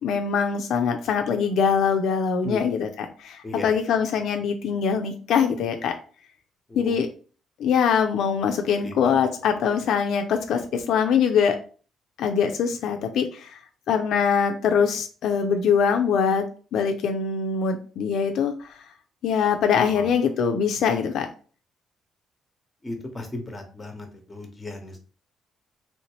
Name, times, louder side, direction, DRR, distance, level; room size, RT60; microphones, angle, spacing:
voice 1, 0.0-6.0 6.7-7.1 7.6-11.6 12.2-13.6 13.9-16.4 16.7-18.8 19.2-21.3, left 6 dB, 75° left, 5 dB, 0.4 m, -23 dB
voice 2, 2.4-2.8 3.4-3.7 6.7-7.0 8.8-9.3 19.9-20.1 22.8-25.0, left 2 dB, 20° left, 4 dB, 0.9 m, -36 dB
3.1 x 2.9 x 3.0 m, 0.39 s
cardioid pair, 90°, 0 cm